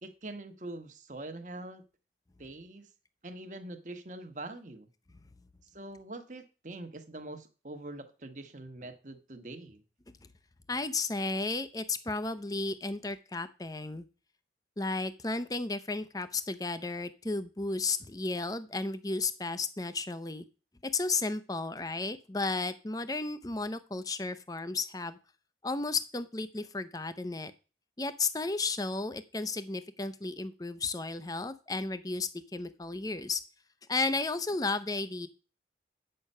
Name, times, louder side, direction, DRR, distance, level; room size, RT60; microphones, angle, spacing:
voice 1, 0.0-1.8 2.4-2.9 3.2-4.9 5.7-9.8, right 2 dB, 45° right, 7 dB, 1.3 m, -44 dB
voice 2, 10.7-14.0 14.8-20.5 20.8-25.2 25.6-27.5 28.0-33.4 33.9-35.3, left 3 dB, 20° left, 12 dB, 0.6 m, -33 dB
9.3 x 6.7 x 5.5 m, 0.34 s
head